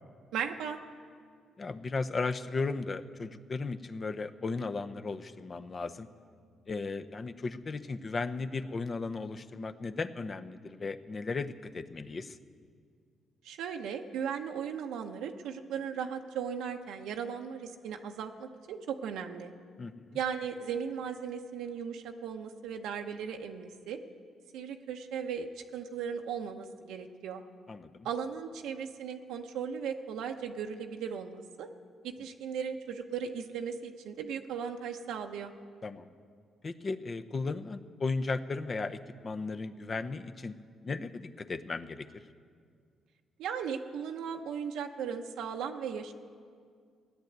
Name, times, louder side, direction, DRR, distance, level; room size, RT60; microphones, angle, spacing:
voice 1, 0.3-0.8 13.4-19.5 20.1-24.0 24.5-27.4 28.0-31.7 32.0-35.5 43.4-46.1, right 7 dB, 85° right, 4 dB, 0.8 m, -37 dB
voice 2, 1.6-6.1 6.7-12.4 19.8-20.2 27.7-28.1 35.8-36.1 36.6-39.0 39.2-40.5 40.8-42.1, left 4 dB, 35° left, 10 dB, 0.7 m, -35 dB
16.5 x 10.5 x 8.0 m, 2.1 s
cardioid pair, 90°, 0 cm